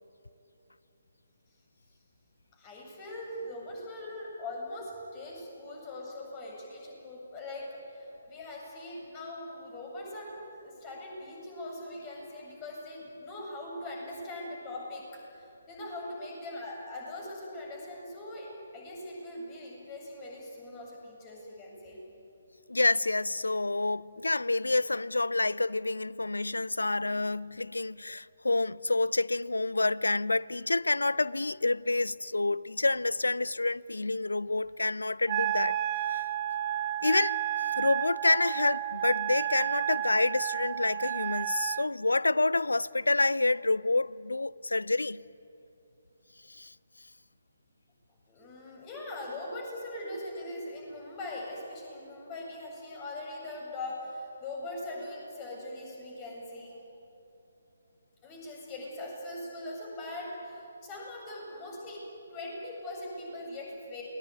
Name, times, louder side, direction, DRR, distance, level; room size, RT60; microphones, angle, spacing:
voice 1, 2.5-22.0 48.3-56.8 58.2-62.0 62.3-64.0, left 1 dB, 20° left, 7.9 m, -41 dB
voice 2, 22.7-35.8 36.1-36.2 37.0-37.4 37.8-45.2 46.6-46.7, left 2 dB, 75° left, 0.6 m, -28 dB
Wind instrument woodwind instrument, 35.3-41.9, right 13 dB, 25° right, 0.5 m, -31 dB
29.0 x 21.0 x 9.5 m
figure-of-eight pair, 140°, 0 cm